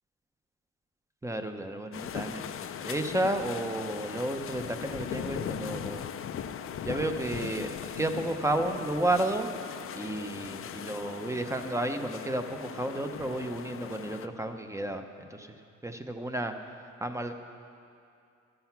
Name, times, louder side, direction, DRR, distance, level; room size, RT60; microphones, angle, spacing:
voice 1, 1.2-2.4 2.8-6.1 6.8-9.5 9.9-16.5 17.0-17.3, right 1 dB, 10° right, 6 dB, 0.7 m, -32 dB
sound 1, 1.9-14.3, left 8 dB, 45° left, 0.5 m, -39 dB
12.5 x 7.8 x 5.8 m, 2.5 s
cardioid pair, 90°, 30 cm